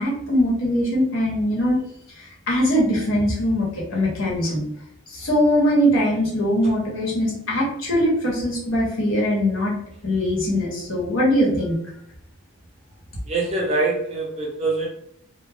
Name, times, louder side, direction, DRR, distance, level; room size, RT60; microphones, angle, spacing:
voice 1, 0.0-1.8 2.2-4.6 5.1-9.7 10.0-11.8, equal, 70° left, -4 dB, 1.0 m, -21 dB
voice 2, 13.3-14.9, right 3 dB, 30° right, -3 dB, 0.6 m, -24 dB
2.2 x 2.0 x 3.3 m, 0.72 s
head